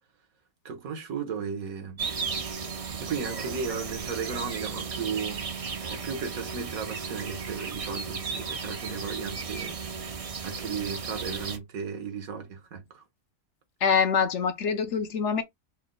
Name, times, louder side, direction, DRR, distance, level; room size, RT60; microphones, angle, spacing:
voice 1, 0.6-2.0 3.0-5.4 5.9-9.8 10.4-13.0, right 6 dB, 80° right, 1.5 m, -35 dB
sound 1, 2.0-11.6, right 5 dB, 55° right, 0.4 m, -35 dB
voice 2, 13.8-15.4, left 6 dB, 65° left, 0.9 m, -25 dB
4.2 x 2.1 x 3.7 m
omnidirectional pair, 1.5 m